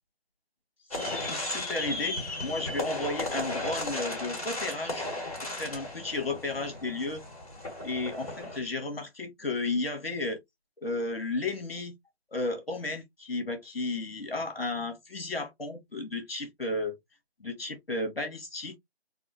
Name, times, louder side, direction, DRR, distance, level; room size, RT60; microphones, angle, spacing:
voice 1, 0.9-5.1 5.4-7.2 7.8-10.4 10.8-11.9 12.3-16.9 17.4-18.8, left 2 dB, 65° left, 1.5 m, -33 dB
sound 1, 0.9-8.6, left 2 dB, 35° left, 1.9 m, -35 dB
4.0 x 2.2 x 3.0 m
figure-of-eight pair, 175°, 32 cm